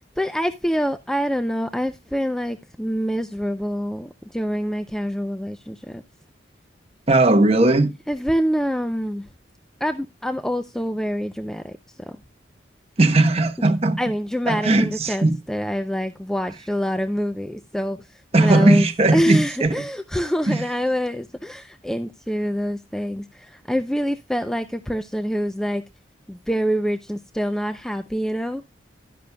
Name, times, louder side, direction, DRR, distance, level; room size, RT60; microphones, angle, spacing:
voice 1, 0.2-6.0 8.1-9.3 9.8-12.2 13.6-13.7 14.0-18.9 19.1-25.8 26.3-28.6, equal, 5° left, 0.4 m, -26 dB
voice 2, 7.1-7.9 13.0-14.0 14.5-15.4 18.3-19.8 20.5-20.6, right 2 dB, 35° right, 1.0 m, -18 dB
12.0 x 10.5 x 2.2 m
head